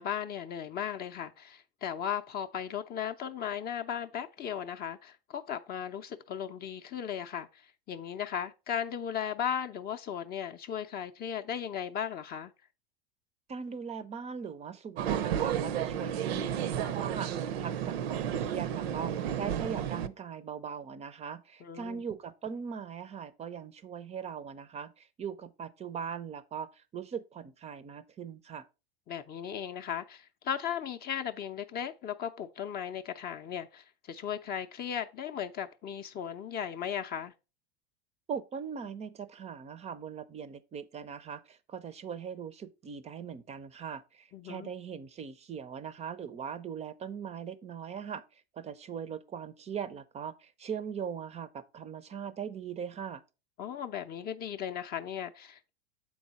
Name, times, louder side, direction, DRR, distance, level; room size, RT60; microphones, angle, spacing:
voice 1, 0.0-7.6 7.9-12.5 21.6-22.0 29.1-37.3 44.3-44.7 53.6-55.7, left 8 dB, 30° left, 0.5 m, -36 dB
voice 2, 13.5-28.6 38.3-48.2 48.6-53.2, right 7 dB, 20° right, 0.5 m, -40 dB
sound 1, 15.0-20.1, right 9 dB, 75° right, 0.7 m, -32 dB
7.1 x 4.6 x 4.0 m
hypercardioid pair, 105°, 31 cm